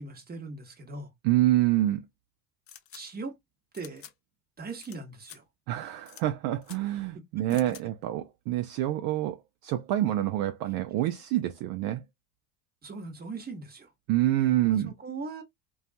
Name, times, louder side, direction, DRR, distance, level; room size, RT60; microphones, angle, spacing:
voice 1, 0.0-1.1 2.9-3.3 3.7-4.0 4.6-5.4 7.4-7.6 12.8-13.9 14.7-15.4, right 3 dB, 20° right, 1.0 m, -39 dB
voice 2, 1.2-2.1 5.7-12.0 14.1-14.9, right 14 dB, 50° right, 0.5 m, -27 dB
sound 1, 2.7-3.0 3.7-4.1 4.8-5.0 5.2-5.4 6.1-6.2 6.6-6.8 7.5-7.8, left 10 dB, 35° left, 0.4 m, -48 dB
2.6 x 2.3 x 2.4 m
supercardioid pair, 95°, 47 cm